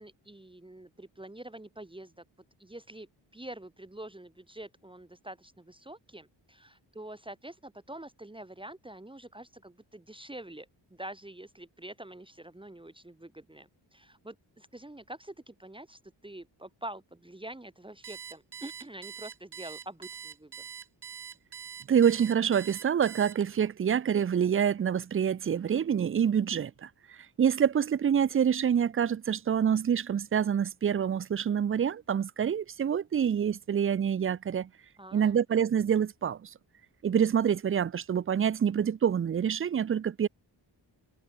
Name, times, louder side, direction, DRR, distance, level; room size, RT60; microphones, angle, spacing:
voice 1, 0.0-2.2 2.6-20.6 35.0-35.4, right 1 dB, 10° right, 1.6 m, -46 dB
Alarm, 18.0-23.7, right 8 dB, 60° right, 3.0 m, -44 dB
voice 2, 21.9-26.9 27.4-34.7 35.1-36.5 37.0-40.3, right 8 dB, 30° right, 0.4 m, -26 dB
wide cardioid pair, 160°, 45 cm